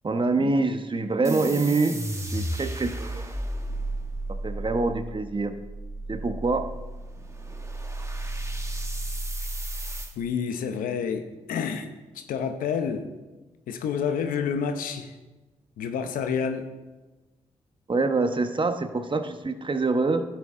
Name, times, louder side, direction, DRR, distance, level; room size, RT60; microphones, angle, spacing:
voice 1, 0.0-2.0 2.3-3.4 4.4-5.6 6.1-6.7 17.9-20.3, right 3 dB, 35° right, 8 dB, 1.1 m, -25 dB
sound 1, 1.2-10.1, right 1 dB, 20° right, 1.5 m, -33 dB
voice 2, 10.2-11.9 12.1-13.1 13.7-15.1 15.8-16.7, left 6 dB, 85° left, 8 dB, 0.8 m, -29 dB
12.0 x 9.4 x 3.8 m, 1.2 s
supercardioid pair, 45°, 14 cm